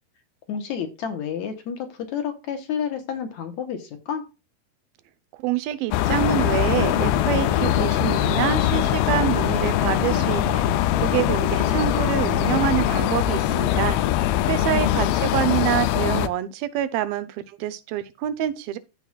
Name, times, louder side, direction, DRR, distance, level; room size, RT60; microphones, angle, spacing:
voice 1, 0.5-4.3 14.3-15.1, left 7 dB, 65° left, 2.1 m, -31 dB
voice 2, 5.4-10.6 11.0-14.0 14.5-18.8, right 12 dB, 90° right, 2.7 m, -26 dB
sound 1, 5.9-16.3, left 12 dB, 90° left, 2.5 m, -22 dB
sound 2, 6.8-15.4, left 1 dB, 35° left, 5.4 m, -35 dB
14.5 x 6.0 x 2.4 m
omnidirectional pair, 4.1 m